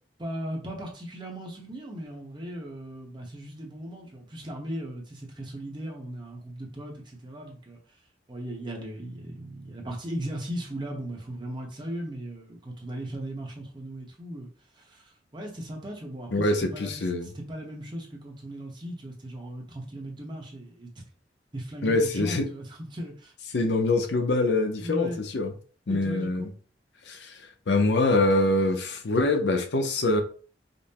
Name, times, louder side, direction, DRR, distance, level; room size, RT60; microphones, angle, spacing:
voice 1, 0.2-7.8 8.3-14.5 14.7-21.0 21.5-23.3 24.8-25.2 25.9-26.5, right 1 dB, 25° right, 0.8 m, -37 dB
voice 2, 16.3-17.3 21.8-22.5 23.5-25.5 25.9-26.5 27.1-27.4 27.7-30.2, left 2 dB, 70° left, 0.6 m, -24 dB
5.2 x 2.1 x 2.8 m
head